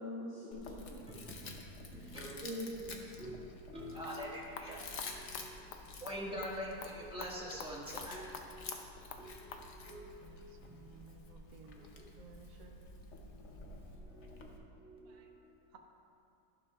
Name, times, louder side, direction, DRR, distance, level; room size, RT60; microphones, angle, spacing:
voice 1, 0.0-1.2 1.9-2.1 2.4-3.2 5.6-5.8, equal, 70° left, -13 dB, 3.3 m, -44 dB
Chewing mastication, 0.5-14.6, left 3 dB, 50° left, 1.0 m, -50 dB
voice 2, 1.9-2.3 3.2-3.3 3.7-5.7 6.0-11.0 14.0-15.4, equal, 5° right, -6 dB, 1.7 m, -46 dB
sound 1, 4.0-9.7, left 5 dB, 90° left, 1.4 m, -50 dB
voice 3, 10.2-11.9 12.2-12.8 15.1-15.3, right 4 dB, 60° right, 2 dB, 1.1 m, -58 dB
13.0 x 11.5 x 2.4 m, 2.5 s
omnidirectional pair, 1.8 m